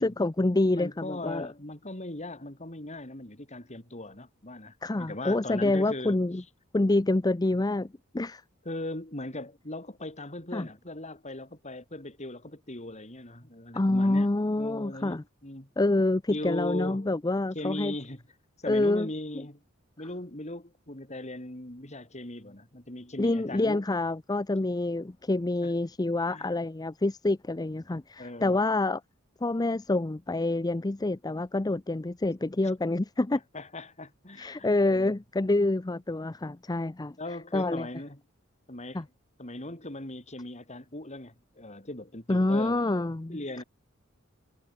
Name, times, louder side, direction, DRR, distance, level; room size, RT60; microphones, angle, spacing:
voice 1, 0.0-1.5 4.8-6.4 6.7-8.4 10.5-10.7 13.7-15.2 15.8-17.9 18.7-19.1 23.2-29.0 29.4-33.4 34.4-37.2 37.5-37.9 38.9-39.0 42.3-43.6, left 2 dB, 20° left, 0.6 m, -27 dB
voice 2, 0.7-6.2 8.7-14.3 14.6-15.7 16.3-17.1 17.5-18.2 18.6-19.6 20.0-23.8 25.6-25.7 26.3-26.5 28.2-28.6 33.5-35.2 37.2-38.2 38.7-39.0 39.4-42.9 43.3-43.6, left 1 dB, 35° left, 5.6 m, -39 dB
head